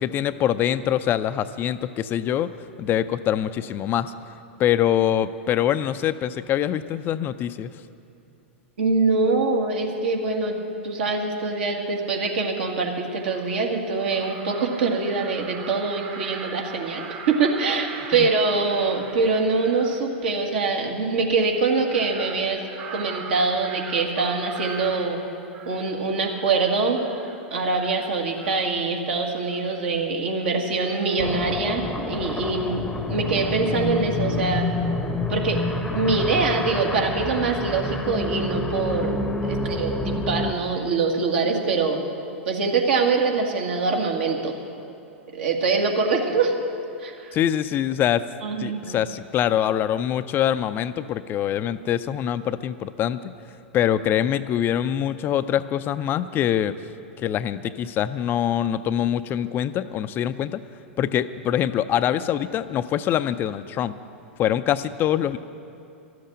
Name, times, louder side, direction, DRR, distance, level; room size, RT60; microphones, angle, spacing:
voice 1, 0.0-2.5 2.8-4.1 4.6-7.7 18.2-18.3 47.3-48.3 48.6-53.3 53.7-56.8 57.2-60.6 61.0-63.9 64.4-65.4, left 10 dB, 30° left, 12 dB, 0.4 m, -24 dB
voice 2, 8.8-10.6 10.8-22.6 22.9-25.2 25.7-27.0 27.5-34.7 35.3-35.6 35.9-42.0 42.5-44.5 45.3-46.5 47.0-47.4 48.4-49.0, right 4 dB, 65° right, 1 dB, 1.9 m, -24 dB
Crow, 12.6-12.7 13.0-13.6 13.9-20.0 21.6-25.9 26.2-26.6 27.0-27.4 27.7-28.7 29.5-29.8 30.8-31.9 32.1-32.4, right 5 dB, 45° right, 1.7 m, -41 dB
sound 1, 31.2-40.5, left 2 dB, 10° left, 0.8 m, -28 dB
13.0 x 7.7 x 10.0 m, 2.7 s
figure-of-eight pair, 100°, 7 cm